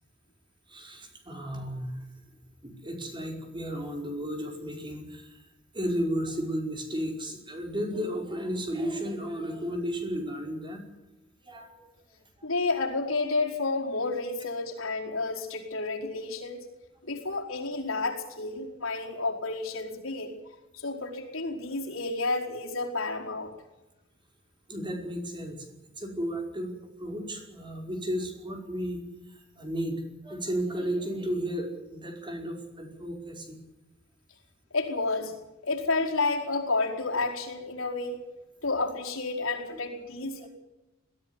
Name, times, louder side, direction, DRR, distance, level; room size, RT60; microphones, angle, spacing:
voice 1, 0.7-2.0 2.6-5.4 5.7-10.9 11.4-11.9 24.7-25.7 26.0-26.7 27.0-29.0 29.3-33.6, equal, 25° right, 2 dB, 5.2 m, -33 dB
voice 2, 12.4-16.6 17.0-20.4 20.7-23.5 34.7-35.3 35.6-38.2 38.6-40.5, left 3 dB, 80° left, -1 dB, 4.8 m, -30 dB
21.5 x 15.5 x 9.8 m, 1.0 s
head